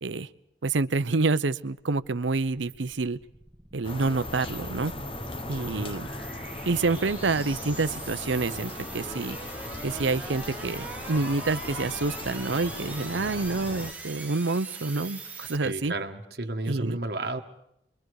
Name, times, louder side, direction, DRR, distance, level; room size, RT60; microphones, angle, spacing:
voice 1, 0.6-3.2 3.7-4.9 5.5-6.1 6.6-9.4 9.8-15.9 16.7-17.0, right 3 dB, 85° right, 14 dB, 0.7 m, -28 dB
sound 1, 1.8-15.6, right 3 dB, 10° right, 1.5 m, -42 dB
sound 2, 3.8-13.9, left 2 dB, 30° left, 1.0 m, -38 dB
voice 2, 5.6-5.9 15.6-17.4, right 2 dB, 60° right, 5 dB, 1.5 m, -32 dB
29.0 x 23.0 x 4.8 m, 0.81 s
head